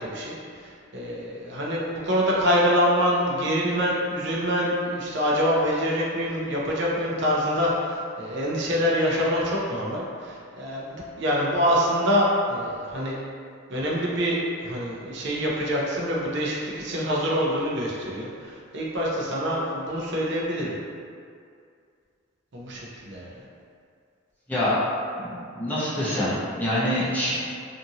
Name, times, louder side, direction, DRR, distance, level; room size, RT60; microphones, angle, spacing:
voice 1, 0.0-13.1 13.7-20.8 22.5-23.3, equal, 55° right, -4 dB, 0.5 m, -25 dB
voice 2, 24.5-24.8 25.2-27.3, left 1 dB, 10° left, -10 dB, 0.6 m, -25 dB
2.6 x 2.5 x 2.7 m, 2.3 s
head